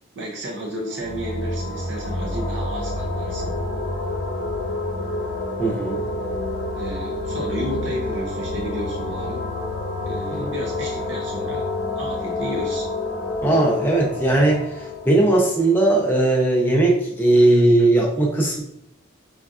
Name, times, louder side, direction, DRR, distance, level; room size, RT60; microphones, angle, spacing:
voice 1, 0.2-3.5 6.8-9.4 10.0-11.7 12.0-12.8, right 1 dB, 60° right, 0 dB, 0.5 m, -32 dB
sound 1, 0.8-16.4, left 2 dB, 70° left, 0.9 m, -28 dB
voice 2, 5.6-6.0 10.4-10.5 13.4-18.6, right 2 dB, 10° left, -2 dB, 0.6 m, -18 dB
4.9 x 2.4 x 2.4 m, 0.81 s
head